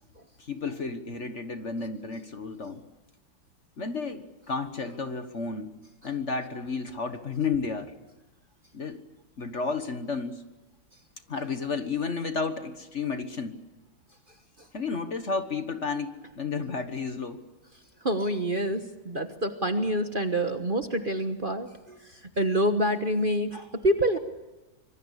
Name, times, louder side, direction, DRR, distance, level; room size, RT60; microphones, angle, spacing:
voice 1, 0.4-2.8 3.8-5.7 6.0-7.9 8.7-9.0 9.4-10.4 11.3-13.6 14.7-17.4, left 4 dB, 40° left, 9 dB, 1.6 m, -32 dB
voice 2, 18.0-22.0 22.4-24.2, right 1 dB, 30° right, 7 dB, 1.3 m, -27 dB
25.5 x 24.0 x 8.3 m, 1.1 s
omnidirectional pair, 2.0 m